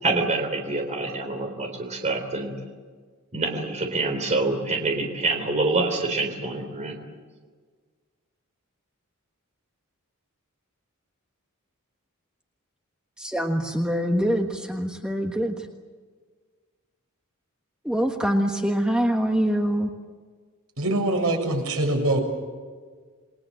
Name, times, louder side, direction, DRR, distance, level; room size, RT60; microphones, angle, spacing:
voice 1, 0.0-2.5 3.3-7.0, right 3 dB, 35° right, 3 dB, 3.6 m, -26 dB
voice 2, 13.2-15.5 17.8-19.9, equal, 5° right, 2 dB, 1.5 m, -24 dB
voice 3, 20.8-22.2, right 1 dB, 75° right, 3 dB, 7.2 m, -23 dB
28.5 x 22.0 x 7.7 m, 1.5 s
head